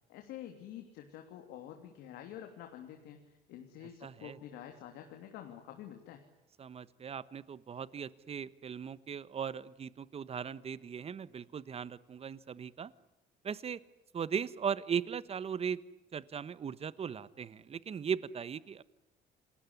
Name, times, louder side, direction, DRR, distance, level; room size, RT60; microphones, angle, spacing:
voice 1, 0.1-6.3, left 10 dB, 85° left, 5 dB, 3.1 m, -48 dB
voice 2, 4.0-4.4 6.6-12.9 13.4-13.8 14.1-15.8 16.1-18.8, right 7 dB, 35° right, 17 dB, 1.2 m, -38 dB
28.5 x 20.5 x 9.8 m, 0.91 s
cardioid pair, 110°, 17 cm